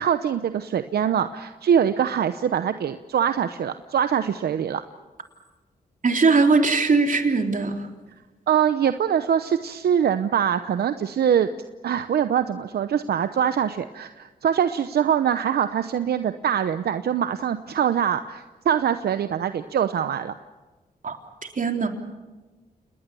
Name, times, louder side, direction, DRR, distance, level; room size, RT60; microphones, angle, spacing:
voice 1, 0.0-4.8 8.5-11.5 11.8-20.3, right 8 dB, 80° right, 11 dB, 0.9 m, -23 dB
voice 2, 6.0-7.7 21.0-21.2 21.6-21.9, right 4 dB, 55° right, 4 dB, 3.6 m, -20 dB
28.5 x 20.0 x 7.0 m, 1.2 s
cardioid pair, 60°, 16 cm